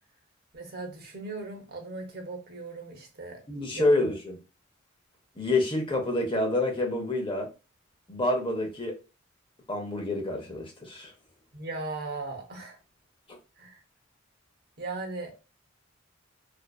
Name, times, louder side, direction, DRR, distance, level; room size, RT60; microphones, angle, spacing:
voice 1, 0.5-3.4 3.7-4.0 11.5-12.8 13.6-13.8 14.8-15.3, right 3 dB, 50° right, 0.7 m, -38 dB
voice 2, 3.5-4.4 5.4-7.5 8.1-8.9 9.7-11.1, left 2 dB, 25° left, 0.6 m, -27 dB
2.5 x 2.2 x 2.2 m
head